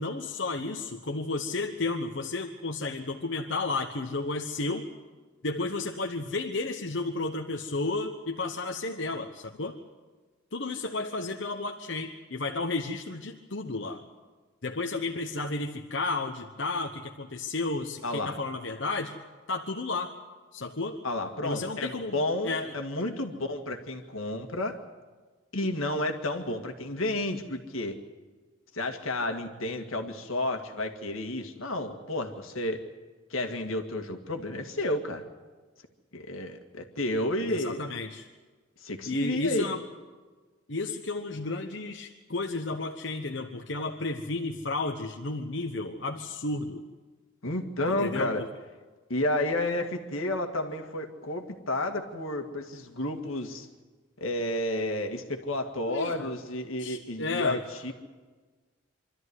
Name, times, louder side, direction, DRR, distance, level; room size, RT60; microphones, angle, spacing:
voice 1, 0.0-4.8 5.4-9.8 10.5-14.0 14.6-19.1 19.5-20.1 20.5-21.0 21.4-22.7 37.5-38.3 39.1-39.8 40.7-46.8 47.9-48.3 55.8-56.4 56.8-57.6, left 3 dB, 65° left, 3 dB, 1.1 m, -32 dB
voice 2, 18.0-18.4 21.0-24.8 25.5-28.0 28.7-32.8 33.3-35.2 36.1-37.8 38.8-39.8 47.4-48.4 49.1-53.7 54.2-57.9, left 1 dB, 90° left, 5 dB, 2.0 m, -31 dB
25.0 x 13.0 x 9.6 m, 1.4 s
head